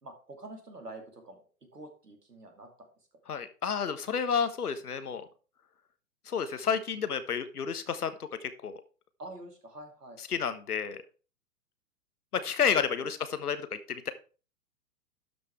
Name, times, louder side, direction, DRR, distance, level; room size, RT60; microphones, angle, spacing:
voice 1, 0.0-2.9 9.2-10.2 12.3-13.1, right 2 dB, 90° right, 4 dB, 2.7 m, -47 dB
voice 2, 3.3-5.3 6.3-8.1 8.4-8.8 10.3-11.0 12.4-14.1, left 7 dB, 75° left, 11 dB, 1.3 m, -30 dB
12.0 x 5.4 x 4.5 m, 0.36 s
figure-of-eight pair, 110°, 46 cm